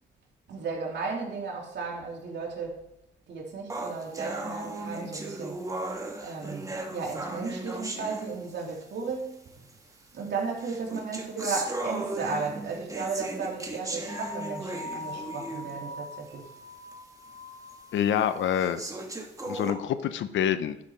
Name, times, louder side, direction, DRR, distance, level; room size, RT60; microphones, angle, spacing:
voice 1, 0.5-2.8 3.3-5.6 6.2-9.6 10.1-16.5, right 4 dB, 60° right, -1 dB, 3.3 m, -34 dB
sound 1, 3.7-8.8 9.7-9.8 10.6-15.9 16.3-16.4 16.9-17.0 17.7-17.8 18.5-19.7, right 2 dB, 15° right, 1.7 m, -36 dB
sound 2, 14.1-18.7, left 2 dB, 30° left, 1.3 m, -42 dB
voice 2, 17.9-18.8 19.4-20.8, left 9 dB, 75° left, 12 dB, 0.8 m, -26 dB
12.0 x 6.5 x 5.1 m, 0.82 s
cardioid pair, 90°, 20 cm